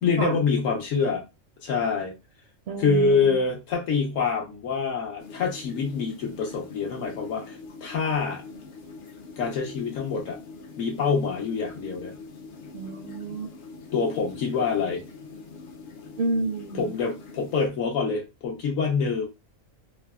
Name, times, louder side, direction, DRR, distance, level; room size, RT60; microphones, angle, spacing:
voice 1, 0.0-1.2 1.6-2.1 2.8-8.4 9.4-10.4 10.8-12.1 13.9-15.0 16.7-19.3, left 5 dB, 80° left, 1.3 m, -26 dB
voice 2, 2.7-3.4 12.7-13.5 16.2-16.9, right 3 dB, 65° right, 0.7 m, -30 dB
sound 1, 5.2-17.7, left 4 dB, 60° left, 0.5 m, -43 dB
3.2 x 2.1 x 2.3 m
omnidirectional pair, 1.4 m